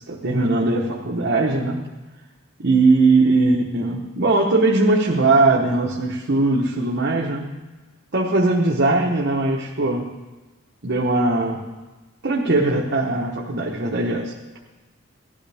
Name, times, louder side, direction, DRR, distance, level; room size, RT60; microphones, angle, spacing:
voice 1, 0.1-1.8 2.6-7.5 8.1-10.1 10.8-11.7 12.2-14.3, right 2 dB, 55° right, -2 dB, 1.1 m, -20 dB
18.0 x 12.5 x 3.5 m, 1.2 s
head